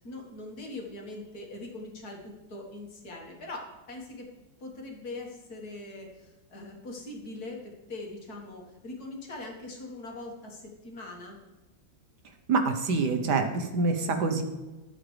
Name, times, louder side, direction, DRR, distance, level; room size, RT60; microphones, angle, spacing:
voice 1, 0.0-4.3 4.6-11.4, left 2 dB, 55° left, 0 dB, 2.2 m, -42 dB
voice 2, 12.5-14.4, right 4 dB, 65° right, 6 dB, 1.5 m, -26 dB
12.5 x 7.9 x 3.3 m, 1.2 s
omnidirectional pair, 2.1 m